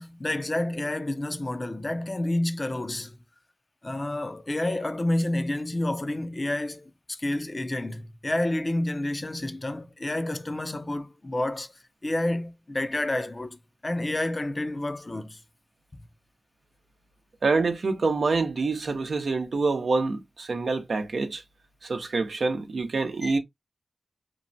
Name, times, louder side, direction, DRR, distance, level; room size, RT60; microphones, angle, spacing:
voice 1, 0.0-3.2 3.8-11.7 12.0-15.4 23.2-23.4, left 1 dB, 40° left, 0.5 m, -29 dB
voice 2, 17.4-21.4 21.8-23.4, right 3 dB, 80° right, 0.6 m, -26 dB
3.0 x 2.1 x 2.6 m
cardioid pair, 50°, 0 cm